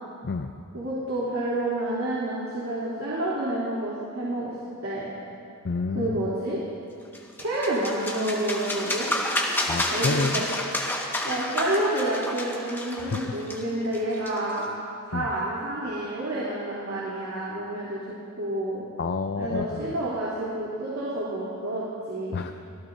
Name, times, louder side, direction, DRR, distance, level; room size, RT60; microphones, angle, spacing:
voice 1, 0.7-4.5 4.8-5.1 5.9-6.6 7.4-9.1 9.9-10.4 11.2-14.7 15.1-18.0 18.4-18.8 19.4-22.4, right 1 dB, 80° right, -8 dB, 3.2 m, -29 dB
voice 2, 5.6-6.3 9.7-10.5 13.0-13.3 15.1-15.3 19.0-20.0 22.3-22.5, left 4 dB, 55° left, 6 dB, 0.5 m, -29 dB
sound 1, 7.1-14.6, left 1 dB, 10° left, 1.5 m, -30 dB
25.0 x 16.5 x 2.7 m, 2.5 s
head